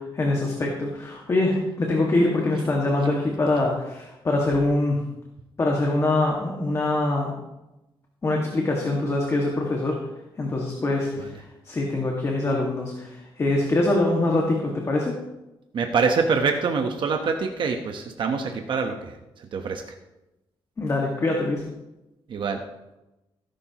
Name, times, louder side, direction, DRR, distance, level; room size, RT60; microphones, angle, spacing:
voice 1, 0.0-5.0 5.6-7.3 8.2-10.0 10.4-11.3 11.6-15.1 20.8-21.7, left 2 dB, 30° left, -1 dB, 2.0 m, -24 dB
voice 2, 15.7-19.8 22.3-22.6, right 5 dB, 60° right, 4 dB, 1.1 m, -25 dB
17.5 x 10.5 x 3.1 m, 0.96 s
cardioid pair, 125°, 9 cm